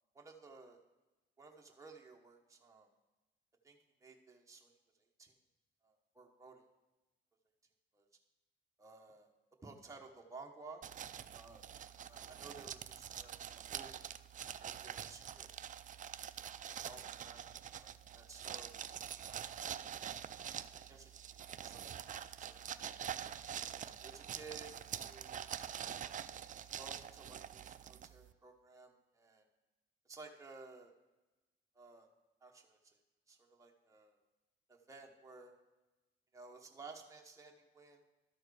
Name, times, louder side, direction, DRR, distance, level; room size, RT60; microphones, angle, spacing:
voice 1, 0.1-0.8 1.4-2.9 3.6-4.7 5.2-5.3 5.8-6.6 7.9-8.1 8.8-9.3 9.6-10.8 11.3-11.6 12.1-13.9 14.6-15.5 16.2-16.3 16.8-18.7 19.2-19.4 20.9-21.1 21.6-22.6 24.0-26.2 26.7-29.4 30.1-31.0 31.8-32.1 32.4-32.8 33.3-34.2 34.7-35.5 36.3-38.0, right 4 dB, 15° right, 1 dB, 1.0 m, -55 dB
sound 1, 10.8-28.3, right 9 dB, 40° right, 0.4 m, -46 dB
12.5 x 4.5 x 4.8 m, 1.1 s
cardioid pair, 90°, 20 cm